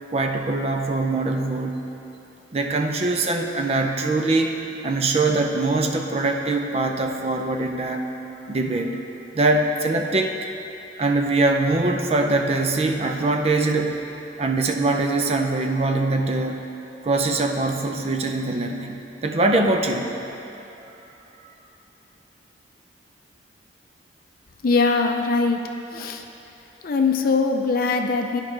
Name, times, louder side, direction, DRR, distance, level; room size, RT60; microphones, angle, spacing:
voice 1, 0.1-1.8 2.5-4.6 4.8-8.0 8.5-9.0 9.3-10.4 11.0-14.0 14.4-16.6 17.0-20.1, right 2 dB, 35° right, 3 dB, 0.5 m, -22 dB
voice 2, 24.6-25.6 25.9-26.2 26.8-28.4, left 4 dB, 50° left, 4 dB, 0.5 m, -21 dB
12.0 x 4.9 x 3.3 m, 3.0 s
head